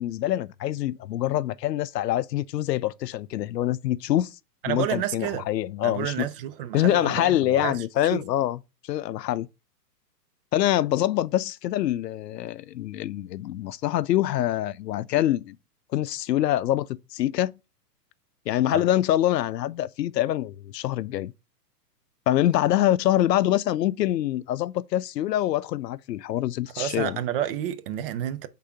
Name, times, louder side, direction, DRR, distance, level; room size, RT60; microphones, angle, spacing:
voice 1, 0.0-4.3 4.7-6.3 6.7-8.6 8.9-9.5 10.5-15.6 15.9-17.6 18.5-21.3 22.3-27.2, left 13 dB, 80° left, 0.6 m, -25 dB
voice 2, 4.6-5.5 5.8-8.2 18.7-18.8 26.8-28.5, right 11 dB, 35° right, 0.6 m, -30 dB
4.9 x 3.7 x 5.7 m
hypercardioid pair, 125°, 49 cm